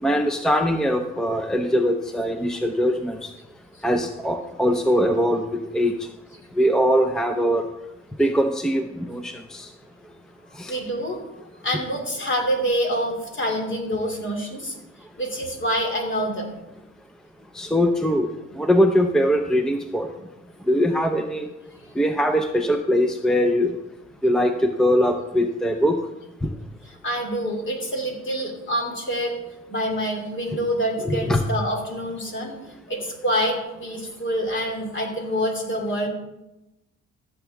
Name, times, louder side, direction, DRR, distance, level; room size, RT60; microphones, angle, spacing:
voice 1, 0.0-3.3 3.8-5.4 5.7-5.9 6.6-7.6 8.2-9.7 10.6-10.8 17.5-18.3 18.6-20.1 20.7-21.5 22.0-23.8 24.2-26.0 26.4-26.5 30.5-30.6 31.0-31.4, equal, ahead, 6 dB, 0.7 m, -21 dB
voice 2, 10.7-11.2 11.6-14.7 15.2-16.5 26.9-29.4 29.7-32.6 32.9-36.1, equal, 40° left, 1 dB, 2.9 m, -26 dB
14.5 x 7.4 x 3.5 m, 0.96 s
cardioid pair, 90°, 30 cm